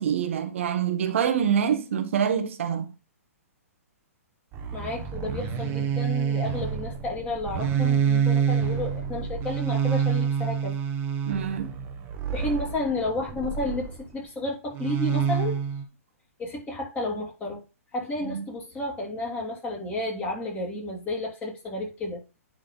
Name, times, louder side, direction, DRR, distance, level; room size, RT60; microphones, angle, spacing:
voice 1, 0.0-2.9 11.3-11.7 18.2-18.4, right 8 dB, 55° right, 1.2 m, -26 dB
sound 1, 4.5-14.1 14.7-15.8, right 7 dB, 25° right, 1.2 m, -27 dB
voice 2, 4.7-10.8 12.3-15.6 16.4-17.6 17.9-22.2, left 2 dB, 20° left, 2.8 m, -32 dB
9.9 x 3.8 x 3.9 m
figure-of-eight pair, 120°, 8 cm